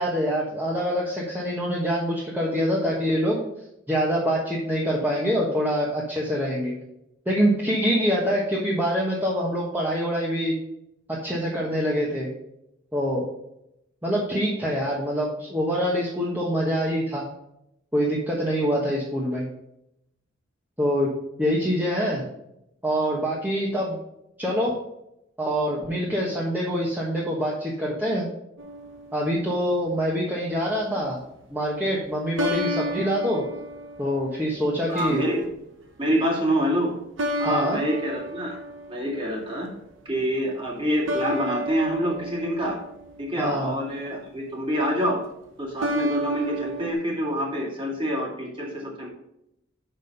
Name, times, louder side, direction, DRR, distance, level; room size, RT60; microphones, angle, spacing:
voice 1, 0.0-3.4 3.9-6.7 7.3-10.6 11.1-12.3 12.9-13.2 14.0-17.3 17.9-19.4 20.8-21.1 21.4-22.3 22.8-24.0 24.4-24.7 25.4-28.3 29.1-31.2 31.5-33.4 34.0-35.2 37.4-37.8 43.4-43.7, equal, 10° right, -4 dB, 1.1 m, -25 dB
sound 1, 28.6-29.4 32.4-34.4 35.0-35.5 37.2-39.2 41.1-43.5 45.8-46.9, equal, 70° right, 1.0 m, -31 dB
voice 2, 34.9-35.4 36.0-37.0 37.4-38.6 38.9-39.7 40.1-42.8 43.2-45.2 45.6-49.1, equal, 25° right, -2 dB, 2.2 m, -26 dB
6.3 x 5.6 x 5.3 m, 0.83 s
head